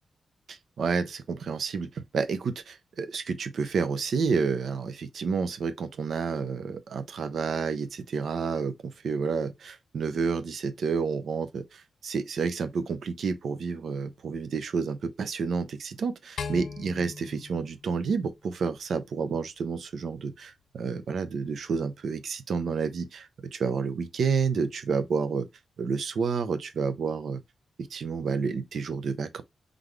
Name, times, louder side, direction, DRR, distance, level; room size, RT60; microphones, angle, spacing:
voice 1, 0.5-25.5 25.8-27.4 27.8-29.4, right 5 dB, 70° right, 0.7 m, -30 dB
sound 1, 16.4-18.8, left 6 dB, 80° left, 0.7 m, -40 dB
4.0 x 3.4 x 3.2 m
wide cardioid pair, 135°, 0 cm